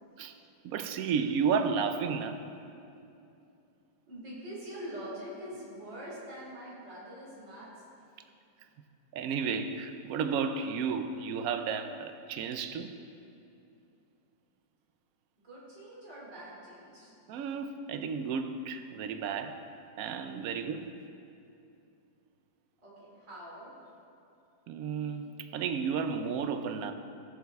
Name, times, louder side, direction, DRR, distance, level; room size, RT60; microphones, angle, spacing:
voice 1, 0.6-2.4 9.1-12.9 17.3-19.6 20.0-20.9 24.7-26.9, right 6 dB, 65° right, 8 dB, 1.0 m, -32 dB
voice 2, 4.1-7.7 15.4-17.1 22.8-23.7, equal, 85° right, -7 dB, 3.6 m, -44 dB
16.0 x 7.1 x 3.6 m, 2.6 s
omnidirectional pair, 1.9 m